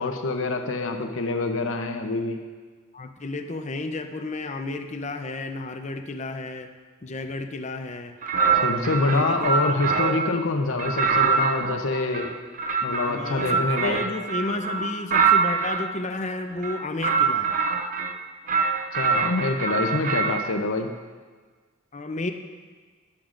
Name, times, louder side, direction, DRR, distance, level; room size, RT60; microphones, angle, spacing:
voice 1, 0.0-2.4 8.6-12.3 12.8-14.0 18.9-20.9, left 3 dB, 75° left, 5 dB, 0.7 m, -26 dB
voice 2, 2.9-6.7 7.0-8.2 9.0-9.7 13.1-17.5 21.9-22.3, left 2 dB, 35° left, 6 dB, 0.6 m, -32 dB
sound 1, 8.2-10.3 10.8-15.9 16.6-18.2 18.5-20.4, right 5 dB, 40° right, 0.5 m, -24 dB
12.5 x 9.9 x 2.5 m, 1.5 s
head